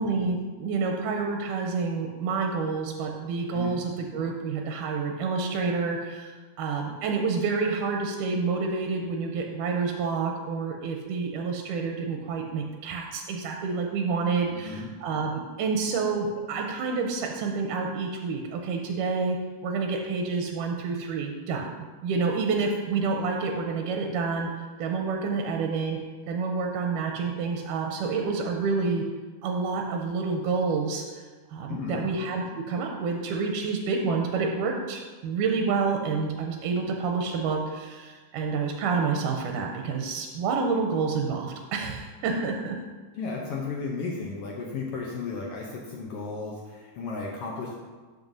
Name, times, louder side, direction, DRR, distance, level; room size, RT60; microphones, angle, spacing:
voice 1, 0.0-19.4 19.6-21.7 22.0-24.5 24.8-26.0 26.3-29.1 29.4-31.2 31.5-42.8, right 4 dB, 90° right, 2 dB, 2.2 m, -28 dB
voice 2, 14.5-14.9 31.7-32.1 43.1-47.7, left 4 dB, 90° left, -1 dB, 1.3 m, -34 dB
12.0 x 5.6 x 2.7 m, 1.3 s
omnidirectional pair, 3.7 m